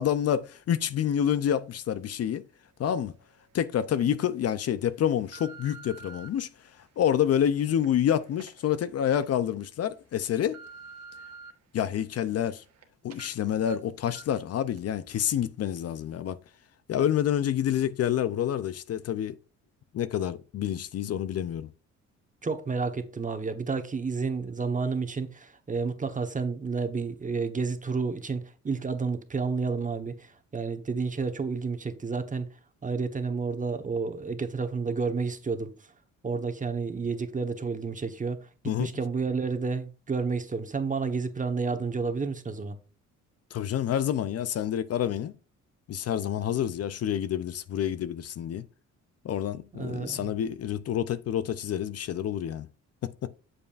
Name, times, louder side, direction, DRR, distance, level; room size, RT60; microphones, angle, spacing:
voice 1, 0.0-2.4 2.8-3.1 3.5-6.5 7.0-10.6 11.7-12.6 13.0-16.4 16.9-19.4 19.9-21.7 38.7-38.9 43.5-45.3 45.9-48.7 49.2-52.7 53.0-53.3, left 10 dB, 55° left, 0.6 m, -28 dB
sound 1, 3.0-3.1 3.7-4.0 4.7-6.3 6.9-9.2 9.7-9.8 10.2-11.5 11.9-12.8 13.1-13.3 13.7-13.8 14.1-14.4 14.8-14.9, right 5 dB, 60° right, 1.4 m, -49 dB
voice 2, 22.4-32.5 32.8-35.7 36.2-38.5 38.8-42.8 49.7-50.3, right 4 dB, 25° right, 1.1 m, -30 dB
8.6 x 7.0 x 2.5 m
cardioid pair, 90°, 30 cm